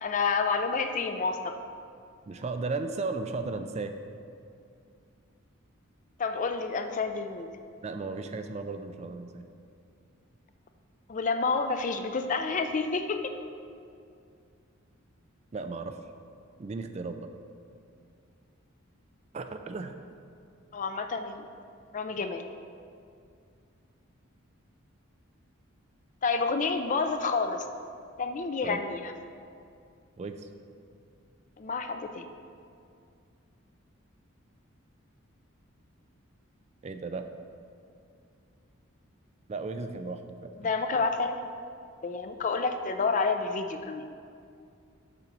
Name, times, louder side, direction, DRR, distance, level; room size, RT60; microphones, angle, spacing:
voice 1, 0.0-1.6 6.2-7.5 11.1-13.3 20.7-21.5 21.9-22.4 26.2-27.6 28.2-29.1 31.6-32.3 40.6-41.5 42.0-44.0, left 4 dB, 35° left, 7 dB, 0.4 m, -29 dB
voice 2, 2.3-3.9 7.8-9.4 15.5-16.0 16.6-17.3 19.3-19.9 28.6-28.8 30.2-30.5 36.8-37.3 39.5-41.0, right 3 dB, 30° right, 7 dB, 0.3 m, -35 dB
6.8 x 5.1 x 5.9 m, 2.4 s
head